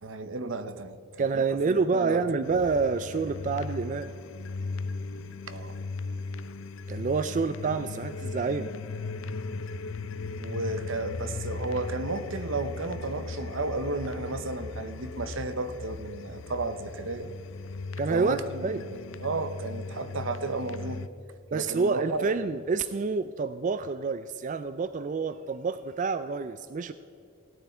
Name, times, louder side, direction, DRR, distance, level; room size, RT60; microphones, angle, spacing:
voice 1, 0.0-2.2 5.5-5.8 10.3-17.3 18.1-21.0 21.5-22.3, right 3 dB, 75° right, 11 dB, 0.8 m, -33 dB
voice 2, 1.2-4.1 6.9-8.7 18.0-18.8 21.5-26.9, right 4 dB, 40° right, 12 dB, 0.3 m, -28 dB
sound 1, 2.4-21.1, left 3 dB, 80° left, 0.6 m, -37 dB
17.0 x 9.5 x 4.4 m, 2.6 s
head